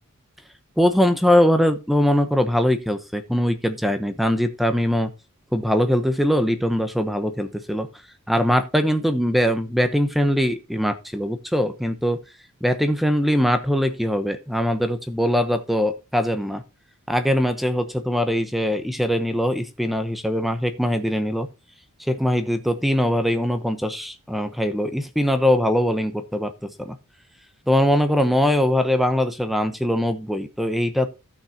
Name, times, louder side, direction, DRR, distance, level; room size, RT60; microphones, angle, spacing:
voice 1, 0.8-5.1 5.5-7.9 8.3-12.2 12.6-16.6 17.1-21.5 22.0-27.0 27.7-31.1, equal, ahead, 8 dB, 0.8 m, -21 dB
16.0 x 6.0 x 2.8 m, 0.28 s
head